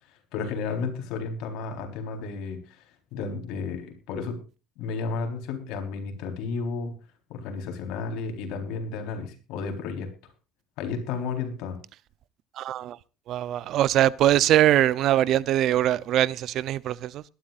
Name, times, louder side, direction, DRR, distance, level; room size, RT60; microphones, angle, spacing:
voice 1, 0.1-2.8 3.1-4.4 4.8-6.9 7.3-10.3 10.8-11.8, left 4 dB, 75° left, 4.0 m, -32 dB
voice 2, 12.6-13.0 13.3-17.2, right 12 dB, 55° right, 0.6 m, -22 dB
21.5 x 11.5 x 2.5 m
cardioid pair, 135°, 0 cm